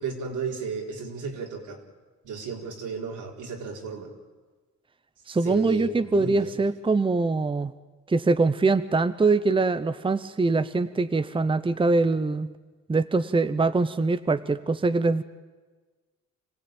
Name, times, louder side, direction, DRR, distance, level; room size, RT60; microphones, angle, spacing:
voice 1, 0.0-1.8 2.2-4.1 5.4-6.5, right 5 dB, 80° right, 1 dB, 4.1 m, -33 dB
voice 2, 5.3-7.7 8.1-12.5 12.9-15.2, right 3 dB, 15° right, 12 dB, 0.9 m, -23 dB
26.0 x 16.0 x 9.0 m, 1.3 s
cardioid pair, 90°, 30 cm